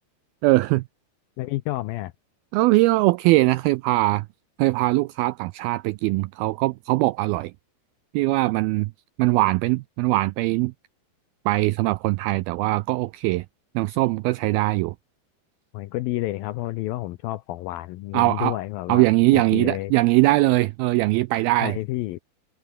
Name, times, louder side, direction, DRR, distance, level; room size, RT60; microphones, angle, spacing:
voice 1, 0.4-0.8 2.5-4.3 4.6-7.5 8.1-8.9 9.2-10.7 11.5-13.5 13.8-14.9 18.1-18.6 18.9-21.8, right 20 dB, 85° right, 2.2 m, -21 dB
voice 2, 1.4-2.1 15.7-19.0 19.3-19.9 21.6-22.2, left 17 dB, 80° left, 2.1 m, -30 dB
omnidirectional pair, 4.9 m